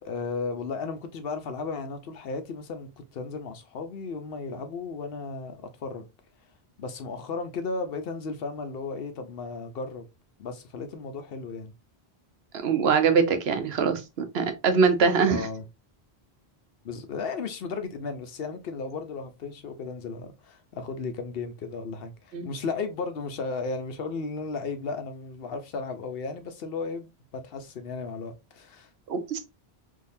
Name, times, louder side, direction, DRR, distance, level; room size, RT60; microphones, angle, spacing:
voice 1, 0.0-6.0 6.8-10.0 10.4-11.7 15.3-15.6 16.8-28.9, left 4 dB, 70° left, 0.9 m, -35 dB
voice 2, 12.6-15.5 22.3-22.5 29.1-29.4, right 5 dB, 80° right, 0.9 m, -23 dB
3.7 x 2.7 x 2.6 m
omnidirectional pair, 1.1 m